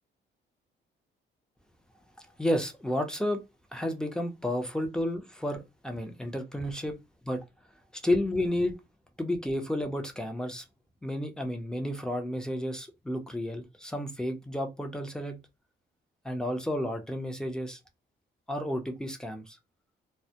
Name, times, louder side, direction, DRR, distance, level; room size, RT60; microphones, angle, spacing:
voice 1, 2.4-3.4 3.7-7.0 7.2-7.4 7.9-8.8 9.2-10.6 11.0-15.4 16.2-17.8 18.5-19.6, left 1 dB, 5° left, 0.6 m, -31 dB
2.1 x 2.0 x 2.8 m
cardioid pair, 90°, 20 cm